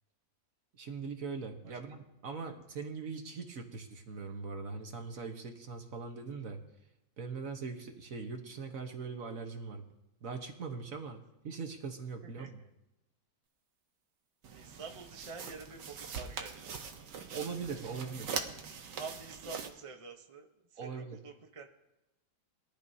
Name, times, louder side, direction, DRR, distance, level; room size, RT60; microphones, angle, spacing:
voice 1, 0.7-6.6 7.2-9.8 10.2-12.6 17.3-18.4 20.8-21.2, right 5 dB, 50° right, 4 dB, 1.4 m, -41 dB
voice 2, 12.2-12.7 14.5-16.8 18.3-18.4 18.9-21.7, right 4 dB, 30° right, 3 dB, 0.5 m, -48 dB
sound 1, 14.4-19.7, right 6 dB, 65° right, 1.6 m, -42 dB
22.0 x 12.0 x 2.8 m, 0.94 s
omnidirectional pair, 2.1 m